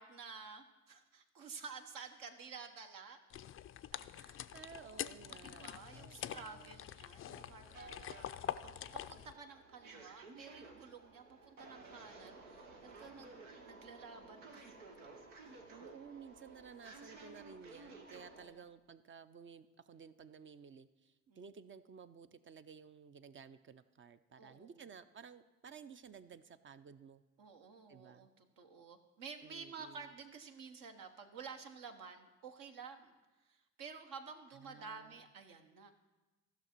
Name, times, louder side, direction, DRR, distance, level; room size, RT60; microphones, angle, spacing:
voice 1, 0.0-3.2 3.9-4.4 4.8-8.2 8.6-13.4 13.6-14.7 15.4-15.6 18.1-18.6 21.3-21.4 24.4-24.9 27.4-35.9, right 5 dB, 60° right, 5 dB, 1.1 m, -52 dB
sound 1, 3.3-9.3, left 11 dB, 35° left, 0.4 m, -45 dB
voice 2, 4.1-5.7 5.9-6.8 15.7-27.2 27.9-28.3 29.4-30.1 34.6-35.2, right 6 dB, 35° right, 12 dB, 0.5 m, -55 dB
sound 2, 7.3-18.5, right 3 dB, 85° right, 0.9 m, -55 dB
14.0 x 6.0 x 4.5 m, 1.1 s
hypercardioid pair, 50°, 37 cm